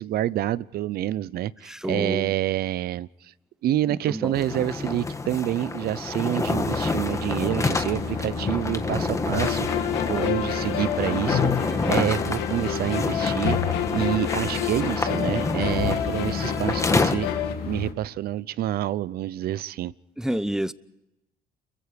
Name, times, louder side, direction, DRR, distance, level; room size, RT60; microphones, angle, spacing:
voice 1, 0.0-3.3 3.6-17.3 17.7-19.9, right 13 dB, 65° right, 0.7 m, -28 dB
voice 2, 1.6-2.3 3.9-4.4 20.2-20.7, right 1 dB, 5° right, 0.8 m, -29 dB
sound 1, 4.3-17.2, left 3 dB, 20° left, 1.4 m, -28 dB
sound 2, 6.5-17.9, left 4 dB, 65° left, 2.8 m, -34 dB
sound 3, 9.3-17.5, left 10 dB, 80° left, 1.9 m, -28 dB
29.0 x 22.5 x 5.2 m
cardioid pair, 110°, 17 cm